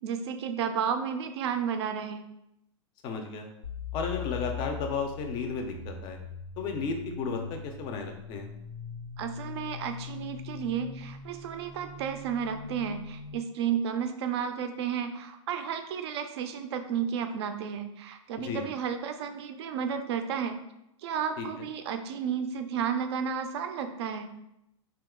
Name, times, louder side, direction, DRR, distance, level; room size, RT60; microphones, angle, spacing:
voice 1, 0.0-2.2 9.2-20.6 21.0-24.3, right 7 dB, 55° right, 8 dB, 0.4 m, -32 dB
voice 2, 3.0-3.5 3.9-6.2 6.6-8.5 18.4-18.7 21.4-21.5, left 5 dB, 25° left, 4 dB, 0.4 m, -33 dB
sound 1, 3.6-13.4, left 5 dB, 85° left, 0.9 m, -41 dB
2.7 x 2.3 x 3.6 m, 0.85 s
hypercardioid pair, 150°, 17 cm